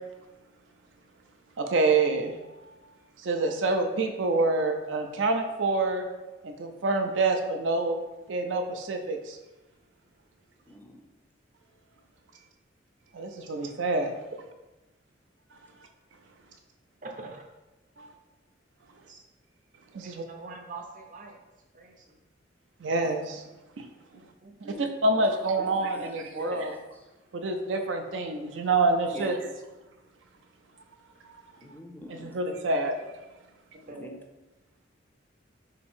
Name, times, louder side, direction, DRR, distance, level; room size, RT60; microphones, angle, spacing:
voice 1, 1.6-2.4 2.6-2.7 3.2-6.0 6.4-8.0 8.3-9.4 13.1-14.2 18.0-18.1 19.9-20.3 22.8-23.4 23.8-23.9 24.8-26.8 27.3-29.5 32.1-33.0, right 3 dB, 85° right, 5 dB, 0.5 m, -27 dB
voice 2, 10.7-11.0 23.0-23.1 24.7-25.2 25.6-26.7 29.1-29.4 31.6-32.4 33.9-34.1, left 1 dB, 10° left, 3 dB, 0.4 m, -44 dB
voice 3, 17.0-17.4 18.0-18.1 19.0-19.2 20.0-21.4 21.7-22.2 24.1-24.8 33.7-34.2, right 3 dB, 45° right, 2 dB, 0.6 m, -44 dB
3.5 x 2.9 x 4.3 m, 1.1 s
head